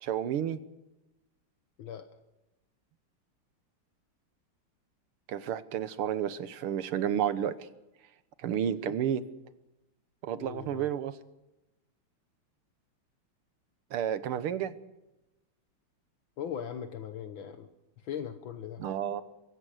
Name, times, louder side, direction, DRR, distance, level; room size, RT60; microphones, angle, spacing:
voice 1, 0.0-0.6 5.3-7.6 8.4-9.2 10.2-11.1 13.9-14.7 18.8-19.2, right 9 dB, 90° right, 14 dB, 2.0 m, -31 dB
voice 2, 10.4-10.9 16.4-17.7 18.0-18.8, left 8 dB, 70° left, 9 dB, 1.8 m, -39 dB
24.5 x 16.5 x 6.5 m, 0.96 s
omnidirectional pair, 2.4 m